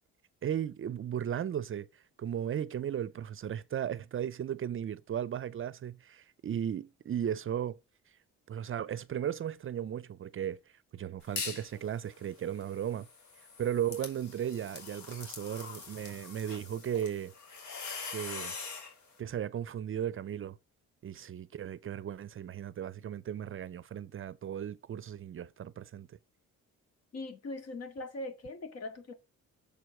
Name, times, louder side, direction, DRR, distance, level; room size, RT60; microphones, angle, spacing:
voice 1, 0.4-7.8 8.5-10.6 10.9-13.1 13.6-17.3 18.1-18.6 19.2-20.6 21.0-26.1, right 9 dB, 45° right, 0.5 m, -36 dB
sound 1, 11.2-11.7 12.1-18.9, left 5 dB, 70° left, 3.1 m, -43 dB
voice 2, 27.1-29.1, left 2 dB, 55° left, 2.3 m, -41 dB
7.0 x 4.6 x 5.8 m
cardioid pair, 90°, 30 cm